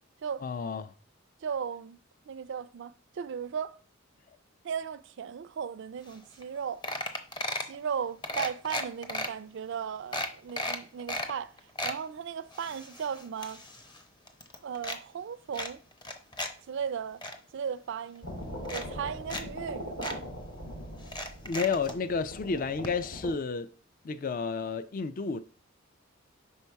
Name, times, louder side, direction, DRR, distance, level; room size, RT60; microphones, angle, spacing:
voice 1, 0.4-0.9 21.4-23.7 24.0-25.4, left 5 dB, 40° left, 0.4 m, -31 dB
voice 2, 1.4-2.0 2.3-3.8 4.6-6.8 7.6-11.5 11.8-13.6 14.6-15.8 16.7-17.2 17.5-18.3 18.7-20.3, right 7 dB, 60° right, 0.4 m, -36 dB
sound 1, 6.1-6.2 6.4-6.6 6.8-7.7 8.2-9.3 9.7-9.8 10.1-11.3 11.6-12.0 12.5-14.0 14.3-15.0 15.5-16.5 16.9-17.3 18.1-18.2 18.6-19.4 19.7-19.8 20.0-20.2 21.0-22.0 22.8-22.9 23.2-23.3, left 1 dB, 20° left, 0.8 m, -35 dB
sound 2, 18.2-23.3, equal, 60° left, 2.2 m, -41 dB
5.5 x 5.2 x 4.6 m
head